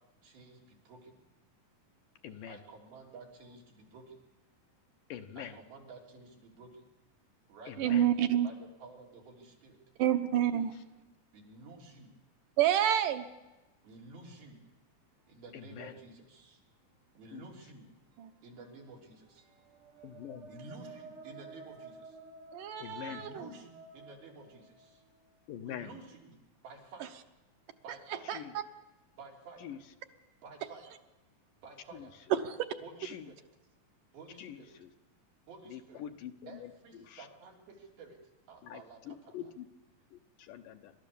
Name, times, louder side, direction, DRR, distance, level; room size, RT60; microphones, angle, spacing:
voice 1, 0.2-1.2 2.5-4.2 5.4-6.8 7.5-8.0 8.4-9.8 11.3-12.2 13.8-14.6 15.2-16.6 17.1-22.2 23.1-25.0 25.6-26.4 26.6-27.2 27.8-28.3 29.1-29.8 30.4-30.9 31.5-32.2 32.8-33.4 34.1-34.7 35.5-36.0 36.5-38.2 38.5-39.5, right 3 dB, 90° right, -2 dB, 5.3 m, -52 dB
voice 2, 2.2-2.6 5.1-5.6 7.7-8.1 10.5-10.7 15.5-15.9 17.3-17.5 20.0-20.5 22.8-23.2 25.5-25.9 28.3-28.5 29.6-29.8 31.9-32.1 33.0-33.3 34.4-34.9 35.7-36.7 37.0-37.3 38.6-38.8 39.1-39.7 40.1-40.9, left 10 dB, 70° left, 7 dB, 2.3 m, -44 dB
voice 3, 7.8-8.5 10.0-10.7 12.6-13.2 18.2-18.3 22.5-23.5 28.3-28.4 32.4-32.6, right 11 dB, 70° right, 8 dB, 2.5 m, -28 dB
sound 1, 19.6-25.4, right 3 dB, 50° right, 1.4 m, -52 dB
28.0 x 13.5 x 7.0 m, 1.1 s
omnidirectional pair, 4.2 m